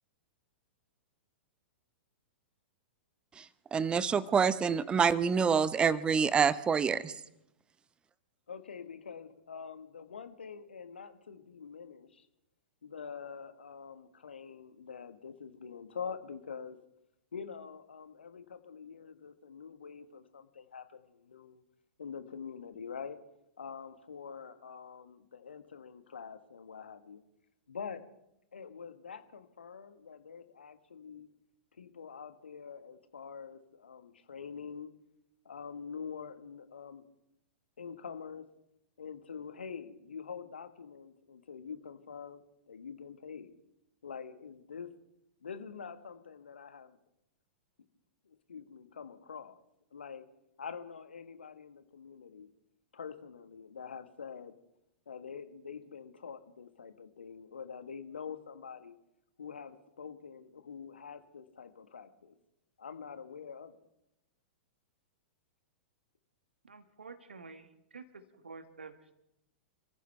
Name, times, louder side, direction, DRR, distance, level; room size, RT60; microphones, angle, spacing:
voice 1, 3.4-7.1, right 6 dB, 15° right, 18 dB, 0.8 m, -27 dB
voice 2, 8.5-12.3 12.8-16.8 17.3-21.6 22.0-23.2 23.6-27.2 27.7-28.0 28.5-31.3 31.7-34.9 35.4-37.0 37.8-38.5 39.0-43.5 44.0-44.9 45.4-47.0 48.3-49.6 49.9-50.3 50.6-52.5 52.9-54.5 55.1-59.0 59.4-62.3 62.8-63.8, left 6 dB, 70° left, 9 dB, 1.5 m, -45 dB
voice 3, 66.7-68.0 68.4-68.9, right 4 dB, 70° right, 9 dB, 1.8 m, -49 dB
28.0 x 15.0 x 3.4 m, 0.85 s
figure-of-eight pair, 100°, 6 cm